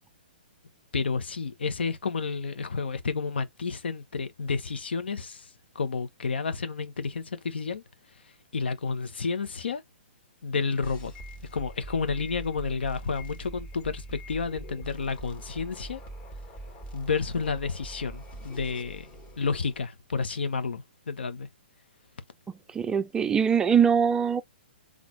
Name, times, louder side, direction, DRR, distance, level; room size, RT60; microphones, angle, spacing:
voice 1, 0.9-5.5 5.7-7.8 8.5-9.8 10.4-11.1 11.5-16.0 16.9-19.1 19.4-21.5, left 5 dB, 80° left, 1.1 m, -30 dB
sound 1, 10.8-19.8, right 1 dB, 25° left, 1.9 m, -43 dB
voice 2, 22.7-24.4, right 7 dB, 10° right, 0.3 m, -22 dB
4.2 x 3.3 x 3.1 m
hypercardioid pair, 140°, 6 cm